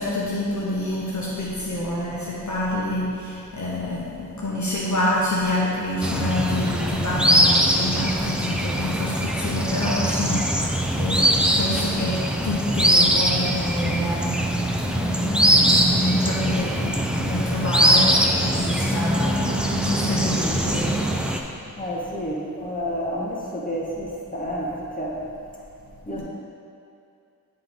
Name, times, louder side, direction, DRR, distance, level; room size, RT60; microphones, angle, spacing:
voice 1, 0.0-10.5 10.9-14.4 14.8-21.1 26.2-26.3, left 1 dB, 55° left, -6 dB, 1.0 m, -27 dB
sound 1, 6.0-21.4, right 1 dB, 5° right, 0.4 m, -22 dB
voice 2, 21.8-25.2 26.0-26.2, equal, 25° left, -5 dB, 1.3 m, -30 dB
9.2 x 3.9 x 3.5 m, 2.5 s
wide cardioid pair, 85°, 35 cm